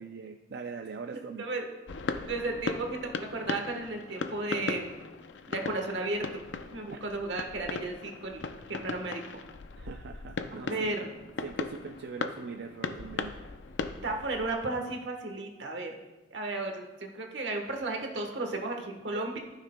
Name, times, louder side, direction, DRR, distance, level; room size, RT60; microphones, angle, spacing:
voice 1, 0.0-1.5 6.9-7.0 9.8-11.1 11.4-13.3, right 5 dB, 65° right, 6 dB, 0.4 m, -41 dB
sound 1, 1.9-14.5, left 4 dB, 85° left, 0.5 m, -38 dB
voice 2, 2.3-4.9 5.5-6.4 6.7-9.4 10.6-11.1 14.0-16.0 16.3-19.4, right 2 dB, 80° right, 3 dB, 1.2 m, -34 dB
15.0 x 6.4 x 2.2 m, 1.1 s
head